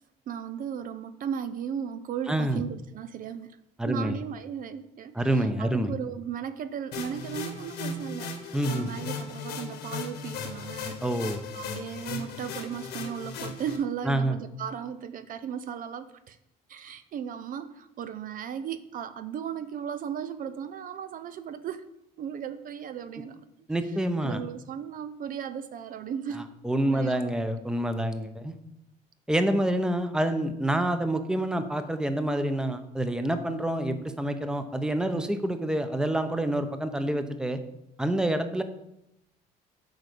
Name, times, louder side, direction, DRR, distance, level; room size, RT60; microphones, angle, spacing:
voice 1, 0.3-3.6 3.8-11.0 11.5-16.4 16.7-21.9 22.2-23.4 24.2-26.5 26.8-27.2, right 8 dB, 55° right, 11 dB, 0.5 m, -36 dB
voice 2, 2.3-2.6 3.8-4.2 5.1-5.9 8.5-8.9 11.0-11.4 14.0-14.4 23.7-24.4 26.3-28.6 29.3-37.6 38.0-38.6, right 1 dB, 5° right, 8 dB, 0.8 m, -27 dB
sound 1, 6.9-13.8, left 4 dB, 80° left, 1.6 m, -37 dB
7.9 x 4.8 x 6.8 m, 0.84 s
cardioid pair, 110°, 17 cm